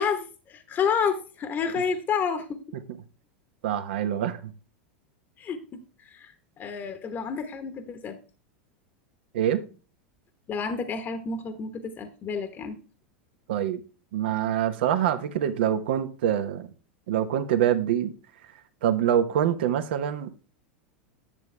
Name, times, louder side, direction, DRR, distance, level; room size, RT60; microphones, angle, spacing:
voice 1, 0.0-2.8 5.4-8.2 10.5-12.8, left 6 dB, 35° left, 1.1 m, -30 dB
voice 2, 3.6-4.5 9.3-9.6 13.5-13.8 14.1-16.7 17.1-18.1 18.8-20.3, right 10 dB, 70° right, 1.0 m, -25 dB
10.5 x 7.0 x 3.3 m
hypercardioid pair, 95°, 6 cm